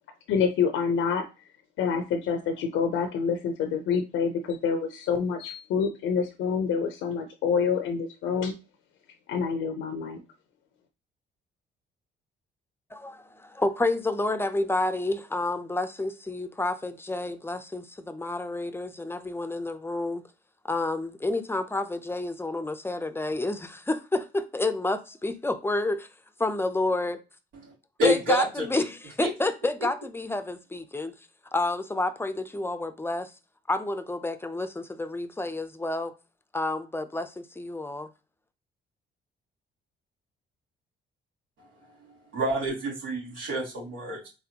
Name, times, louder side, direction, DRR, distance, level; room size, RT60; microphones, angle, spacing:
voice 1, 0.3-1.3 1.8-8.5 9.3-10.2, left 6 dB, 80° left, 0.6 m, -27 dB
voice 2, 12.9-20.2 20.6-26.1 26.4-27.2 28.0-31.1 31.5-33.3 33.7-36.1 36.5-38.1, left 2 dB, 10° left, 0.5 m, -29 dB
voice 3, 28.0-28.8 29.2-29.3 42.3-44.3, equal, 85° right, 2.6 m, -27 dB
4.1 x 3.5 x 2.8 m
cardioid pair, 90°, 20 cm